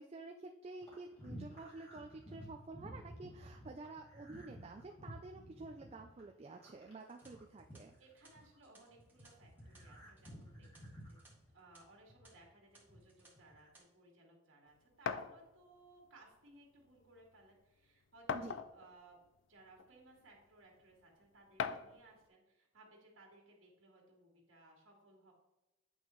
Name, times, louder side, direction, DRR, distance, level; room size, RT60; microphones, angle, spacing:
voice 1, 0.0-7.9 18.3-18.6, right 3 dB, 30° right, 3 dB, 0.4 m, -50 dB
sound 1, 0.8-8.6 8.9-12.4 12.8-13.7, equal, 30° left, 2.1 m, -54 dB
sound 2, 7.0-11.3 11.6-11.8 12.2-12.3 12.7-13.3 13.6-13.8, right 3 dB, 10° right, 1.3 m, -66 dB
voice 2, 8.0-11.2 11.5-19.2 19.5-25.3, right 2 dB, 70° right, -1 dB, 1.9 m, -62 dB
sound 3, 15.1-15.3 16.5-16.6 17.0-17.1 18.3-18.9 19.8-19.9 21.6-22.0, left 6 dB, 65° left, 0.4 m, -38 dB
8.7 x 5.4 x 3.1 m, 1.0 s
head